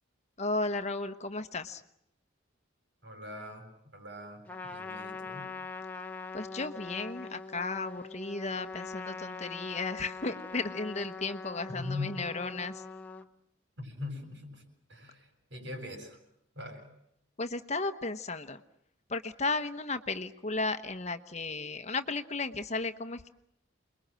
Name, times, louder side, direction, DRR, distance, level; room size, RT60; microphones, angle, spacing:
voice 1, 0.4-1.8 6.3-12.8 17.4-18.6 19.1-23.3, left 3 dB, 35° left, 9 dB, 1.1 m, -34 dB
voice 2, 3.0-3.7 3.9-5.5 11.7-12.2 13.8-14.6 14.9-16.2 16.5-16.9, left 2 dB, 65° right, 5 dB, 7.7 m, -41 dB
Trumpet, 4.5-13.3, left 4 dB, 10° left, 1.2 m, -42 dB
29.5 x 22.0 x 7.7 m, 0.76 s
head